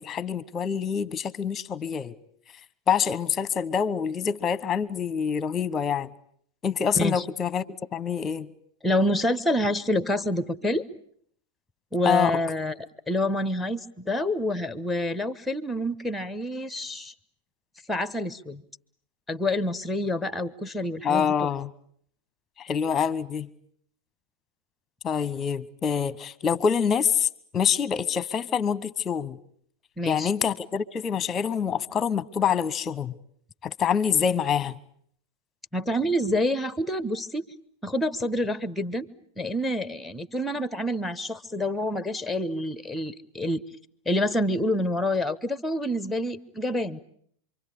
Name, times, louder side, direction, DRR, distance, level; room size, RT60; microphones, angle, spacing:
voice 1, 0.0-2.1 2.9-6.1 6.6-7.6 7.9-8.5 12.0-12.4 21.0-21.7 22.6-23.5 25.0-29.4 30.0-33.1 33.6-34.8, left 7 dB, 20° left, 1.1 m, -26 dB
voice 2, 8.8-10.8 11.9-12.7 13.1-17.1 17.9-18.6 19.3-21.3 30.0-30.3 35.7-37.4 37.8-39.1 39.4-43.6 44.0-47.0, left 1 dB, 5° left, 1.1 m, -27 dB
27.5 x 24.0 x 8.4 m
figure-of-eight pair, 90°, 0 cm